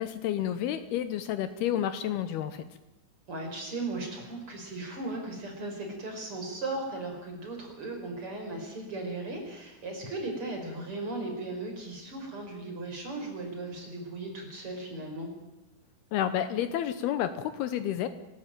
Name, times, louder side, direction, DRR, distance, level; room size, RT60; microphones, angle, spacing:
voice 1, 0.0-2.7 16.1-18.1, left 10 dB, 90° left, 10 dB, 2.2 m, -30 dB
voice 2, 3.3-15.3, right 2 dB, 25° right, 3 dB, 5.5 m, -37 dB
30.0 x 13.0 x 9.2 m, 0.99 s
omnidirectional pair, 5.9 m